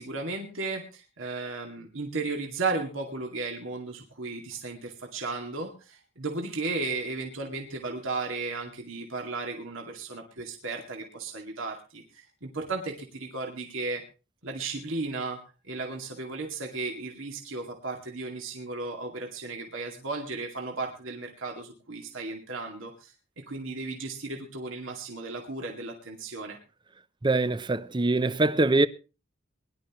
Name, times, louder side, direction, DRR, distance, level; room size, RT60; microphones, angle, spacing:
voice 1, 0.0-14.0 14.4-15.4 15.6-26.6, right 3 dB, 75° right, 2.3 m, -35 dB
voice 2, 27.2-28.9, right 2 dB, 20° right, 0.6 m, -23 dB
22.0 x 11.5 x 3.0 m
head